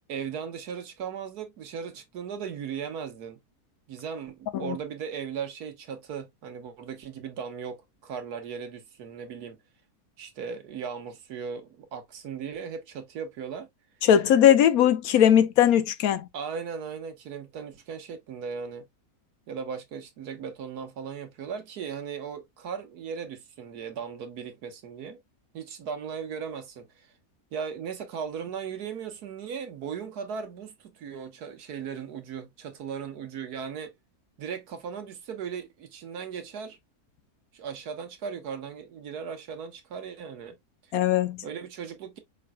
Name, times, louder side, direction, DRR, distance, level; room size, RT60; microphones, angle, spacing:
voice 1, 0.1-3.4 3.9-9.6 10.2-13.7 16.3-18.9 19.5-25.2 25.5-27.1 27.5-33.9 34.4-36.8 37.5-40.6 41.4-42.2, right 6 dB, 85° right, 1.6 m, -37 dB
voice 2, 14.0-16.3 40.9-41.4, left 10 dB, 75° left, 1.1 m, -20 dB
5.0 x 3.8 x 2.2 m
omnidirectional pair, 1.6 m